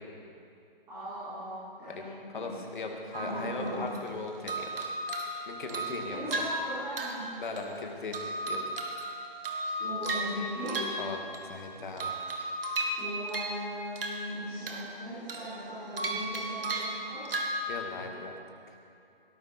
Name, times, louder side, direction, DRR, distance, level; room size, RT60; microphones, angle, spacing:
voice 1, 0.9-2.5 3.2-3.9 6.1-7.4 9.8-10.9 13.0-17.3, equal, 10° right, -16 dB, 4.1 m, -38 dB
voice 2, 2.3-4.7 5.5-6.3 7.4-8.2 8.5-8.6 11.0-12.1 17.7-18.4, left 3 dB, 55° left, 2 dB, 2.2 m, -38 dB
sound 1, 3.1-4.1 4.5-7.8 8.1-11.6 12.0-13.6 14.0-15.0 15.3-17.6, right 1 dB, 70° right, 2.3 m, -35 dB
17.5 x 13.0 x 4.4 m, 2.6 s
hypercardioid pair, 170°, 30 cm